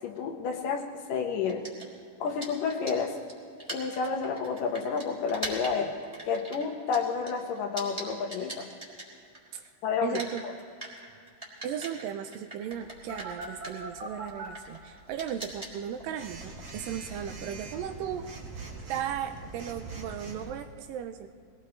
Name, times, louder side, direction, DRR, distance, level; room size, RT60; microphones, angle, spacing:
voice 1, 0.0-1.7 2.2-3.2 3.7-6.0 6.3-8.7 9.8-10.5, left 5 dB, 70° left, 4 dB, 2.4 m, -30 dB
sound 1, 1.5-9.7 9.9-18.2, right 1 dB, 10° right, 2.6 m, -43 dB
voice 2, 10.0-10.4 11.6-18.3 18.9-21.3, right 9 dB, 80° right, 7 dB, 2.2 m, -36 dB
Telephone, 13.1-14.5 16.2-20.5, right 3 dB, 50° right, 2.7 m, -42 dB
22.0 x 18.5 x 3.2 m, 2.4 s
omnidirectional pair, 4.3 m